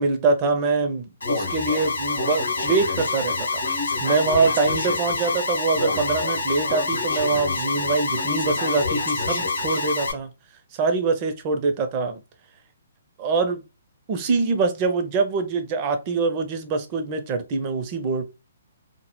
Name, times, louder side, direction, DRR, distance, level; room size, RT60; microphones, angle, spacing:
voice 1, 0.0-3.6 4.0-10.3 10.8-12.2 13.2-13.6 14.1-18.2, right 4 dB, 30° right, 0.5 m, -24 dB
Alarm, 1.2-10.1, left 3 dB, 70° left, 0.8 m, -26 dB
2.1 x 2.0 x 2.9 m
figure-of-eight pair, 130°, 0 cm